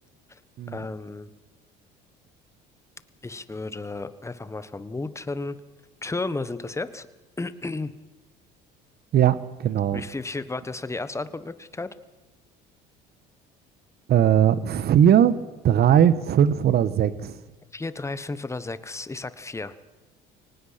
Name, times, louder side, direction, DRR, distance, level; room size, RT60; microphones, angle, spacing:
voice 1, 0.7-1.3 3.2-5.6 6.0-7.1 7.4-8.0 9.9-11.9 17.7-19.7, left 3 dB, 15° left, 14 dB, 1.4 m, -33 dB
voice 2, 9.1-10.0 14.1-15.3 15.6-17.4, right 9 dB, 55° right, 15 dB, 1.4 m, -19 dB
23.5 x 19.0 x 5.9 m, 1.2 s
supercardioid pair, 85°, 20 cm